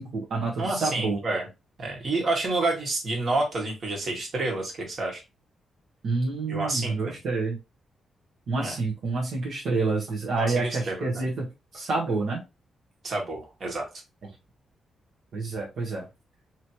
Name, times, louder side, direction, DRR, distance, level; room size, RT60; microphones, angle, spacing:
voice 1, 0.0-1.2 6.0-7.6 8.5-11.4 11.7-12.4 15.3-16.0, right 3 dB, 70° right, -3 dB, 1.1 m, -28 dB
voice 2, 0.6-1.5 1.8-5.2 6.5-7.2 8.6-8.8 10.3-11.2 13.0-13.9, right 2 dB, 45° right, 0 dB, 1.6 m, -29 dB
3.1 x 2.9 x 2.8 m, 0.25 s
cardioid pair, 110°, 0 cm